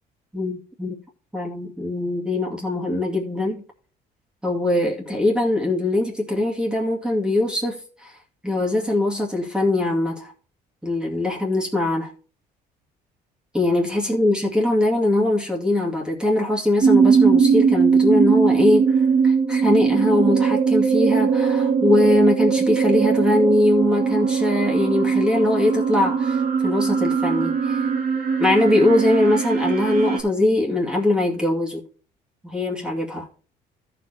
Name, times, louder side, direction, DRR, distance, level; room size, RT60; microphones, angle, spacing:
voice 1, 0.3-1.0 1.3-3.6 4.4-8.1 8.4-10.3 10.8-12.1 13.5-27.9 28.4-31.8 32.4-33.3, left 1 dB, 5° right, 2.3 m, -21 dB
sound 1, 16.8-30.2, right 6 dB, 60° right, 2.3 m, -20 dB
13.5 x 5.1 x 4.3 m
cardioid pair, 110°, 17 cm